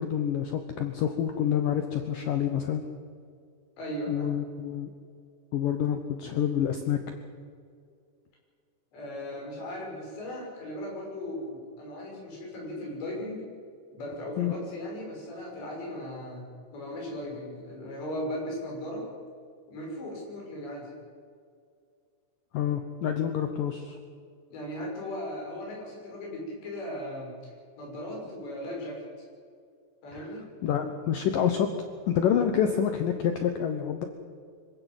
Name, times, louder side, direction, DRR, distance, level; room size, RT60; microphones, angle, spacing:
voice 1, 0.0-2.8 4.1-4.9 5.5-7.0 14.4-14.5 22.5-24.0 30.1-30.3 30.6-31.7 32.1-34.1, left 9 dB, 85° left, 6 dB, 1.9 m, -27 dB
voice 2, 3.8-4.4 8.9-13.4 13.9-16.5 16.7-19.1 19.7-20.9 24.5-29.0 30.0-30.5, left 1 dB, 60° left, -2 dB, 8.4 m, -37 dB
25.5 x 16.5 x 8.2 m, 2.2 s
omnidirectional pair, 5.6 m